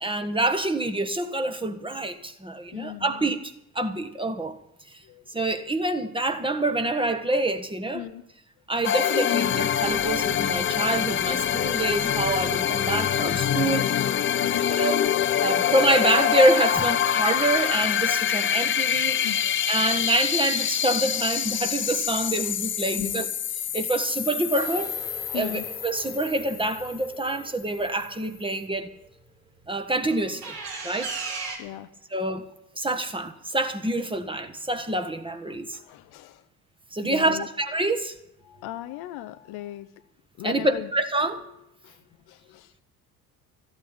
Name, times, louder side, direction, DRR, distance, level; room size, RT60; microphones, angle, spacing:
voice 1, 0.0-3.4 3.7-4.6 5.3-8.0 8.7-13.9 14.7-19.2 19.7-23.3 23.7-24.9 25.3-28.9 29.7-30.6 30.8-31.1 32.1-32.5 32.8-35.8 36.9-38.2 40.4-41.4, right 2 dB, 10° right, 1.4 m, -26 dB
voice 2, 2.6-3.2 5.0-5.6 7.9-8.2 14.4-14.7 19.2-19.4 23.0-23.3 25.3-25.7 31.6-31.9 35.5-36.5 37.0-37.5 38.4-40.1 40.4-40.9 41.2-41.5 41.8-42.7, left 14 dB, 55° left, 0.9 m, -38 dB
sound 1, 8.8-27.3, left 9 dB, 25° left, 0.6 m, -25 dB
sound 2, 24.5-28.3 30.1-31.6, right 4 dB, 75° right, 3.0 m, -38 dB
14.0 x 8.8 x 9.0 m
figure-of-eight pair, 55°, 46 cm